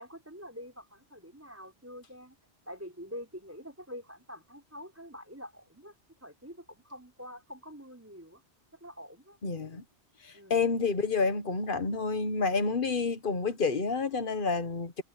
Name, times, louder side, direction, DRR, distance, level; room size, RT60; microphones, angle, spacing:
voice 1, 0.0-2.4 2.7-5.9 6.2-8.4 8.8-9.4 10.3-10.7, equal, 15° right, 5.0 m, -46 dB
voice 2, 9.4-9.8 10.2-15.0, left 4 dB, 55° left, 1.5 m, -29 dB
omnidirectional pair, 1.1 m